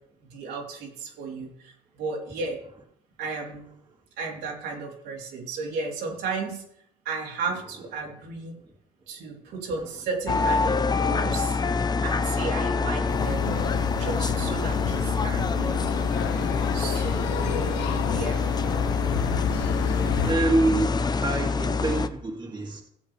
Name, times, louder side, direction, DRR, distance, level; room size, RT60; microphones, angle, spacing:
voice 1, 0.2-1.7 2.0-2.6 3.2-3.7 4.2-6.6 7.0-8.5 9.1-11.6 12.0-13.6 14.0-15.8 16.7-18.4, right 4 dB, 80° right, -2 dB, 3.4 m, -34 dB
sound 1, 10.3-22.1, left 4 dB, 25° left, 0.7 m, -26 dB
sound 2, 13.1-20.3, left 10 dB, 85° left, 0.8 m, -30 dB
voice 2, 16.8-17.9 20.2-22.8, right 2 dB, 25° right, 0 dB, 2.3 m, -28 dB
16.5 x 7.8 x 3.4 m, 0.71 s
cardioid pair, 110°, 17 cm